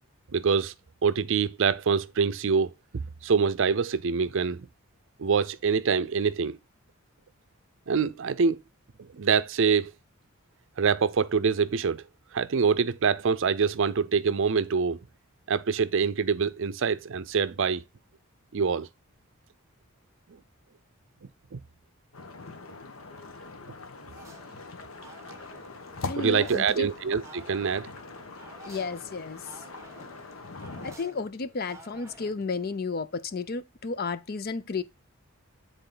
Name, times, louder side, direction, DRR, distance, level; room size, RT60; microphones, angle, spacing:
voice 1, 0.3-0.7 1.0-4.7 5.2-6.6 7.9-8.6 9.1-9.9 10.8-12.0 12.3-15.0 15.5-17.8 18.5-18.9 21.5-21.6 26.2-27.9, right 5 dB, 65° right, 0.5 m, -25 dB
sound 1, 22.1-31.0, left 3 dB, 80° left, 1.1 m, -42 dB
sound 2, 24.1-32.8, right 2 dB, 15° right, 1.2 m, -51 dB
voice 2, 26.0-26.9 28.6-29.6 30.8-34.8, left 4 dB, 45° left, 0.5 m, -32 dB
9.1 x 4.1 x 3.8 m
head